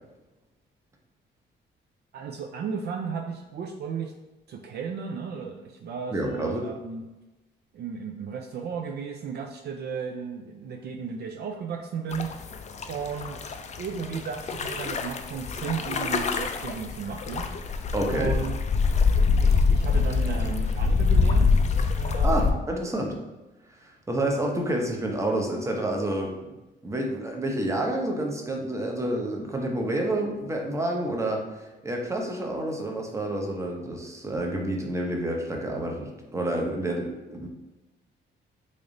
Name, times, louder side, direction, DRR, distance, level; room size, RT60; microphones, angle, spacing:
voice 1, 2.1-4.1 4.5-7.0 7.7-12.6 12.9-13.4 13.8-17.5 18.1-18.6 19.1-21.6 22.0-22.6, right 6 dB, 55° right, 3 dB, 0.4 m, -34 dB
voice 2, 6.1-6.6 17.9-18.3 22.2-23.1 23.8-26.3 26.8-31.4 31.8-37.5, right 1 dB, 15° right, 0 dB, 0.7 m, -29 dB
sound 1, 12.1-22.5, left 4 dB, 35° left, 0.4 m, -25 dB
3.3 x 2.6 x 3.8 m, 1.1 s
cardioid pair, 90°, 20 cm